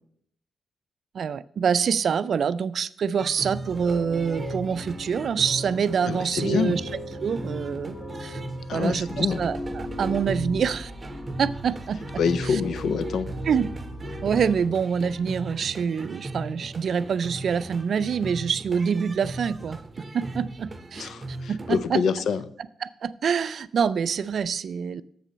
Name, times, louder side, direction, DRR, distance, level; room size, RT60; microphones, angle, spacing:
voice 1, 1.1-6.8 7.2-7.9 8.2-8.4 8.7-10.9 11.4-12.0 12.5-12.6 13.5-13.7 14.2-19.8 20.1-22.0 22.8-25.0, right 6 dB, 60° right, 15 dB, 0.4 m, -26 dB
sound 1, 3.2-21.9, right 2 dB, 30° right, 0.7 m, -38 dB
sound 2, 3.6-14.6, left 1 dB, 40° left, 2.0 m, -38 dB
voice 2, 6.0-6.8 8.7-9.4 12.2-13.3 21.0-22.4, left 6 dB, 75° left, 14 dB, 0.5 m, -26 dB
6.9 x 6.0 x 6.8 m, 0.67 s
cardioid pair, 75°, 0 cm